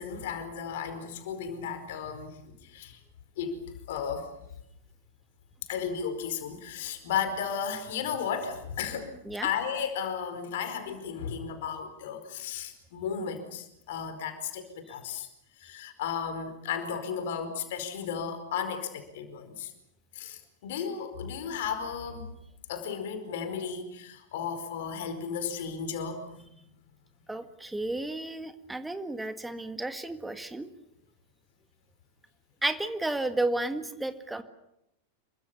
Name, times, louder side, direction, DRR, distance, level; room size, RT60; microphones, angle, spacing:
voice 1, 0.0-3.0 3.4-3.5 3.9-4.3 5.7-9.1 9.4-15.3 15.6-19.7 20.1-22.3 22.7-26.2, left 7 dB, 55° left, 8 dB, 4.8 m, -34 dB
voice 2, 27.3-30.7 32.6-34.4, right 2 dB, 5° right, 9 dB, 1.8 m, -32 dB
28.5 x 24.0 x 7.0 m, 0.82 s
figure-of-eight pair, 90°, 0 cm